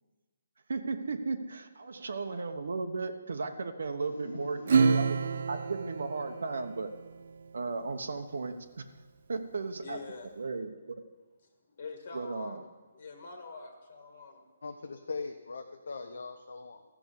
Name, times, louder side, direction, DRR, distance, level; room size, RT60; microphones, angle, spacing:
voice 1, 0.7-5.2 5.5-6.9 7.5-8.8 9.3-10.0 10.3-11.0 12.1-12.6, right 4 dB, 70° right, 7 dB, 1.1 m, -35 dB
voice 2, 4.1-5.4 14.6-16.8, left 4 dB, 70° left, 4 dB, 1.0 m, -42 dB
Acoustic guitar / Strum, 4.7-7.6, right 5 dB, 50° right, 0.4 m, -29 dB
voice 3, 9.8-10.6 11.7-12.7 12.9-14.5, left 4 dB, 50° left, 4 dB, 1.7 m, -45 dB
14.0 x 6.1 x 8.3 m, 1.3 s
hypercardioid pair, 170°, 0 cm